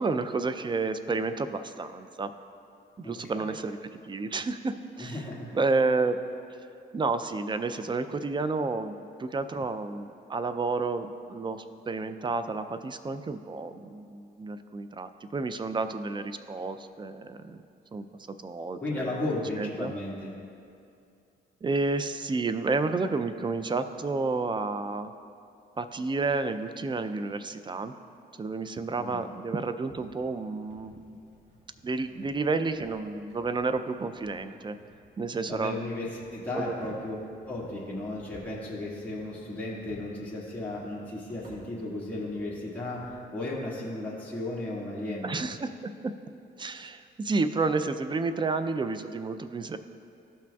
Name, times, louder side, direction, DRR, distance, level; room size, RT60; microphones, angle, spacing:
voice 1, 0.0-2.3 3.0-3.8 4.0-5.2 5.5-6.2 6.9-17.6 17.9-19.2 19.6-19.9 21.6-25.1 25.8-27.9 28.4-31.2 31.8-34.8 35.2-35.8 36.5-36.7 45.2-45.9 46.6-49.8, right 3 dB, 25° right, 10 dB, 0.4 m, -30 dB
voice 2, 3.0-3.5 5.0-5.6 18.8-20.4 29.0-29.2 35.5-37.2 37.5-45.3, left 2 dB, 10° left, -7 dB, 1.7 m, -35 dB
sound 1, 29.9-43.1, right 1 dB, 65° right, 1.6 m, -56 dB
13.5 x 5.9 x 2.3 m, 2.6 s
cardioid pair, 90°, 20 cm